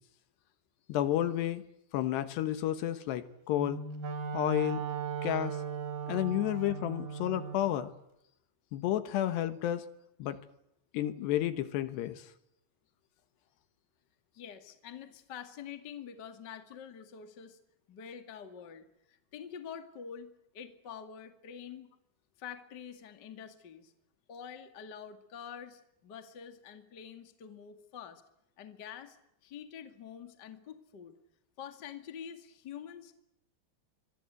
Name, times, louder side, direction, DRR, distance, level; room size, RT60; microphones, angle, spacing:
voice 1, 0.9-1.6 1.9-3.8 4.3-4.9 5.2-5.6 6.1-7.9 8.7-9.9 10.2-10.4 10.9-12.3, left 12 dB, 70° left, 11 dB, 3.1 m, -31 dB
Wind instrument woodwind instrument, 3.5-7.7, right 7 dB, 55° right, 4.3 m, -37 dB
voice 2, 14.3-17.6 17.9-21.9 22.4-23.9 24.3-28.2 28.6-29.2 29.4-31.1 31.6-33.1, left 8 dB, 35° left, 7 dB, 1.8 m, -46 dB
25.5 x 24.0 x 8.2 m, 0.81 s
omnidirectional pair, 5.3 m